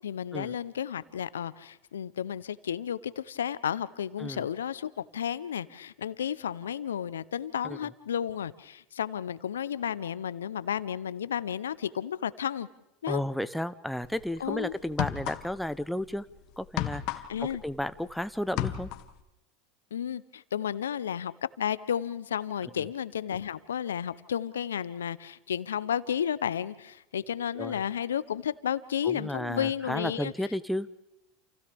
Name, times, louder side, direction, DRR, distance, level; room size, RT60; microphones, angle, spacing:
voice 1, 0.0-12.7 13.0-13.2 14.4-14.8 17.3-17.6 19.9-21.3 21.6-30.3, left 9 dB, 85° left, 17 dB, 0.7 m, -32 dB
voice 2, 13.1-16.3 16.6-18.9 27.6-27.8 29.0-30.9, left 1 dB, ahead, 12 dB, 0.7 m, -33 dB
sound 1, 14.0-14.2 14.8-15.8 16.0-18.1 18.4-19.2, left 13 dB, 60° left, 1.5 m, -33 dB
29.0 x 28.0 x 3.5 m, 0.90 s
hypercardioid pair, 90°, 0 cm